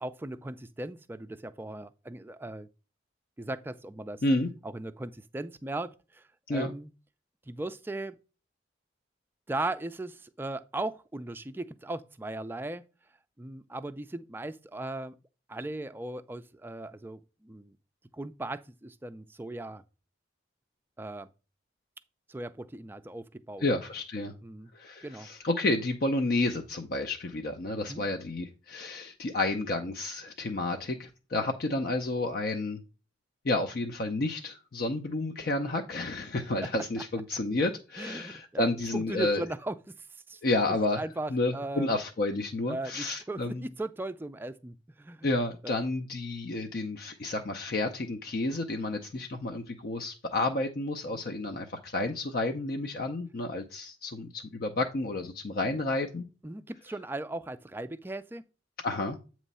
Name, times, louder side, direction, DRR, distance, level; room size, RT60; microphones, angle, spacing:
voice 1, 0.0-2.7 3.4-4.2 4.6-6.9 7.5-8.2 9.5-12.8 13.4-15.1 15.5-17.7 18.1-19.8 21.0-21.3 22.3-23.7 24.4-24.7 25.0-25.3 27.9-28.0 38.0-40.4 40.7-41.9 42.7-45.3 45.6-45.8 51.1-51.2 56.4-58.4, right 2 dB, 10° right, 0.3 m, -38 dB
voice 2, 23.6-24.3 24.7-32.8 33.4-39.4 40.4-41.0 41.3-43.6 45.2-56.3 58.8-59.2, left 2 dB, 55° left, 0.5 m, -30 dB
8.2 x 3.0 x 5.4 m
head